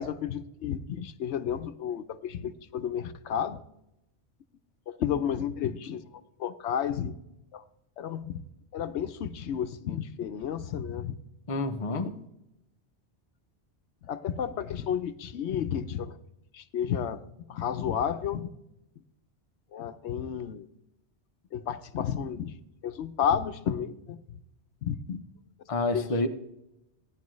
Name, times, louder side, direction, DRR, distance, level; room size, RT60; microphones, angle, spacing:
voice 1, 0.0-3.6 4.9-6.0 6.4-7.1 7.5-7.6 8.0-8.4 8.7-11.1 12.0-12.3 14.0-16.2 16.5-17.2 17.5-18.5 19.7-20.7 21.5-22.5 22.8-24.4 24.8-25.2 25.9-26.1, left 8 dB, 80° left, 11 dB, 0.9 m, -32 dB
voice 2, 11.5-12.1 25.7-26.3, left 2 dB, 35° left, 6 dB, 0.8 m, -28 dB
15.5 x 10.5 x 3.1 m, 0.84 s
omnidirectional pair, 1.2 m